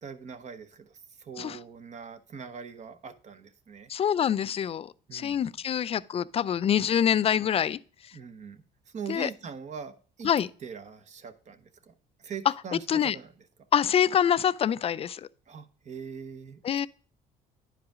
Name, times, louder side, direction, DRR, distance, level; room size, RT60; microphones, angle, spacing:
voice 1, 0.0-3.9 5.1-5.6 8.1-10.3 10.6-11.9 12.2-13.3 15.5-16.9, right 6 dB, 45° right, 0.9 m, -42 dB
voice 2, 3.9-7.8 9.1-9.3 10.2-10.5 12.9-13.2 13.7-15.2 16.6-16.9, left 9 dB, 35° left, 0.4 m, -25 dB
10.5 x 4.9 x 3.5 m
cardioid pair, 110°, 17 cm